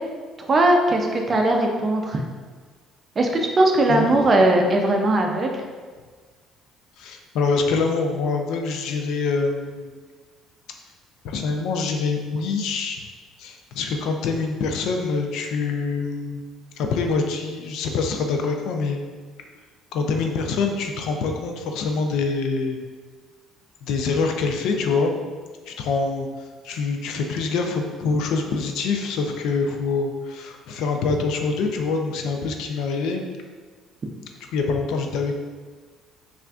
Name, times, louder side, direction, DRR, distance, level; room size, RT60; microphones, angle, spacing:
voice 1, 0.4-2.2 3.2-5.6, right 1 dB, 30° right, 2 dB, 0.4 m, -19 dB
voice 2, 3.9-4.2 7.0-9.9 11.2-13.0 13.4-16.4 16.7-19.0 19.4-19.5 19.9-22.8 23.8-25.2 25.7-33.3 34.5-35.3, left 4 dB, 70° left, 3 dB, 0.4 m, -25 dB
5.6 x 2.5 x 2.4 m, 1.5 s
cardioid pair, 140°, 0 cm